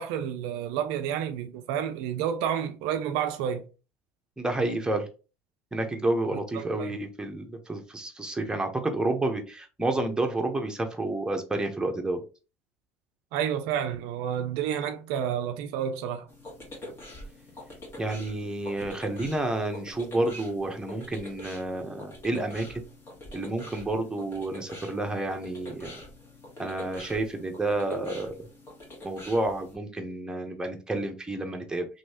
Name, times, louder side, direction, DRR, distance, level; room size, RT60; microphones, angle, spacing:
voice 1, 0.0-3.7 6.5-6.9 13.3-16.3, right 9 dB, 70° right, 0.4 m, -30 dB
voice 2, 4.4-5.1 5.7-12.2 18.0-22.8 23.3-26.0 26.6-28.5 29.0-31.9, right 2 dB, 10° right, 0.9 m, -30 dB
sound 1, 16.3-29.8, left 1 dB, 30° left, 1.7 m, -45 dB
3.0 x 2.7 x 2.8 m
hypercardioid pair, 80°, 8 cm